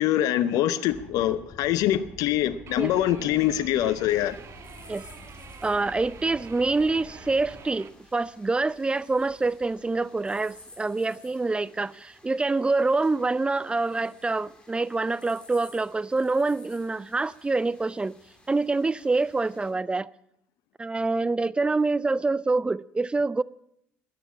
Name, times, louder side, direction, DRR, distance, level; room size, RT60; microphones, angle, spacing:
voice 1, 0.0-4.4, left 12 dB, 70° left, 0.7 m, -24 dB
sound 1, 0.9-7.6, left 1 dB, 35° left, 3.6 m, -48 dB
sound 2, 2.7-7.9, right 7 dB, 45° right, 1.4 m, -47 dB
sound 3, 4.1-19.7, left 2 dB, 15° left, 4.0 m, -55 dB
voice 2, 5.6-18.2 18.5-20.1 20.8-23.4, right 3 dB, 15° right, 0.5 m, -26 dB
13.5 x 10.0 x 8.5 m
supercardioid pair, 75°, 6 cm